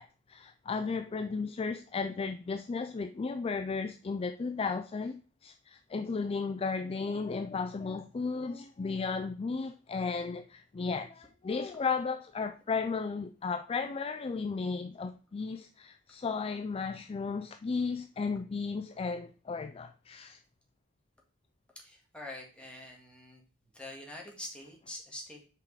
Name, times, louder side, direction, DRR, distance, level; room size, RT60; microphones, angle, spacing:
voice 1, 0.0-20.4, left 4 dB, 30° left, 0.3 m, -34 dB
voice 2, 21.8-23.4 23.7-25.5, left 1 dB, 5° left, 1.9 m, -45 dB
5.8 x 5.0 x 4.7 m
head